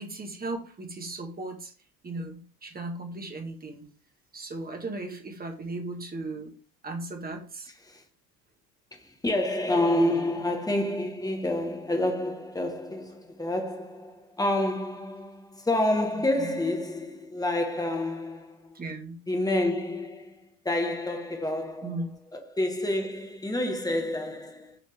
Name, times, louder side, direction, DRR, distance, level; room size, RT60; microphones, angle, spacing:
voice 1, 0.0-1.7 2.0-3.9 4.3-6.5 6.8-7.7 9.8-10.3 16.4-16.5 18.7-19.2 21.8-22.2, right 2 dB, 20° right, 1.8 m, -37 dB
voice 2, 8.9-18.8 19.3-24.8, left 1 dB, 5° left, 1.4 m, -29 dB
7.0 x 4.1 x 3.5 m
figure-of-eight pair, 65°, 49 cm